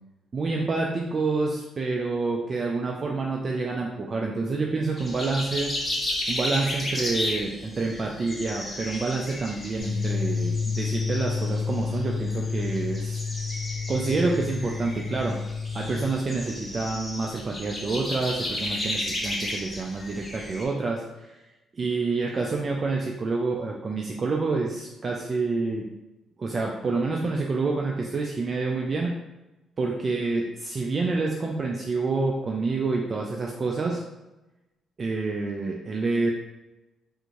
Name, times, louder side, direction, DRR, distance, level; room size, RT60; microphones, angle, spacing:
voice 1, 0.3-5.7 6.3-13.2 13.9-15.4 15.7-21.4 21.7-25.9 26.4-29.1 29.8-34.0 35.0-36.3, right 3 dB, 40° right, 0 dB, 0.4 m, -28 dB
sound 1, 5.0-20.6, left 1 dB, 15° left, 0.8 m, -34 dB
sound 2, 9.8-16.0, left 5 dB, 45° left, 1.1 m, -30 dB
3.6 x 2.6 x 3.0 m, 1.0 s
cardioid pair, 90°, 0 cm